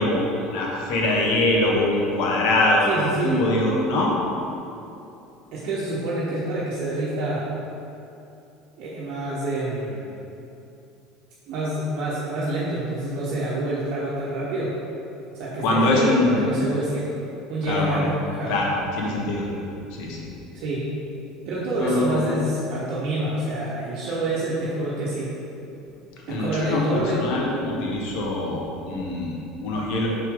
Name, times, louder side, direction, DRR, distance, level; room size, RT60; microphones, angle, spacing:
voice 1, 0.0-2.9 3.2-4.1 15.6-16.5 17.6-18.0 18.5-19.4 20.0-20.3 21.8-22.2 26.3-30.1, left 2 dB, 65° left, -2 dB, 1.2 m, -23 dB
voice 2, 2.9-3.4 5.5-7.5 8.8-10.2 11.5-14.7 15.3-17.1 17.5-18.6 20.5-20.9 21.5-25.4 26.3-27.2, right 1 dB, 60° right, -8 dB, 1.0 m, -27 dB
5.8 x 4.6 x 3.7 m, 2.7 s
hypercardioid pair, 80°, 0 cm